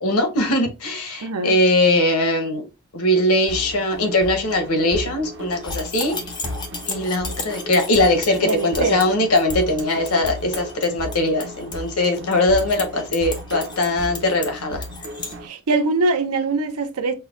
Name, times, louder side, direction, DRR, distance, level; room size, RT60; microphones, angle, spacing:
voice 1, 0.0-2.7 2.9-6.2 6.9-14.8, left 1 dB, 80° left, 0.9 m, -20 dB
voice 2, 1.2-1.6 8.4-9.0 15.4-17.1, right 3 dB, 90° right, 0.6 m, -22 dB
sound 1, 3.5-15.5, equal, 50° right, 0.6 m, -35 dB
sound 2, 5.5-15.3, left 4 dB, 20° left, 0.4 m, -34 dB
5.5 x 2.2 x 2.4 m
head